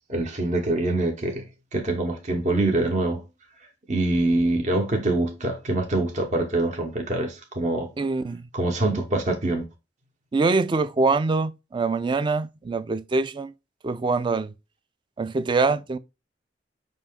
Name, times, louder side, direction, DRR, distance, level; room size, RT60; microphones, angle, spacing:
voice 1, 0.1-1.4 1.7-3.2 3.9-7.9 8.5-9.6, right 2 dB, 40° right, 0.8 m, -24 dB
voice 2, 8.0-8.5 10.3-13.5 13.8-14.5 15.2-16.0, right 3 dB, 25° right, 0.3 m, -24 dB
5.2 x 2.7 x 3.5 m
head